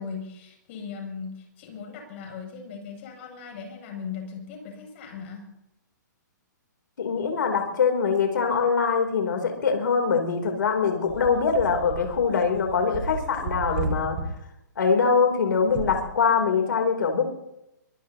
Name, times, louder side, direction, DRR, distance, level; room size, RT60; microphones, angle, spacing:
voice 1, 0.0-5.5, left 6 dB, 40° left, 2 dB, 6.8 m, -38 dB
voice 2, 7.0-14.2 14.8-17.2, left 5 dB, 80° left, 4 dB, 3.2 m, -23 dB
sound 1, 11.1-14.3 15.6-16.0, right 4 dB, 45° right, 4.8 m, -33 dB
23.5 x 21.0 x 2.9 m, 0.86 s
hypercardioid pair, 160°, 10 cm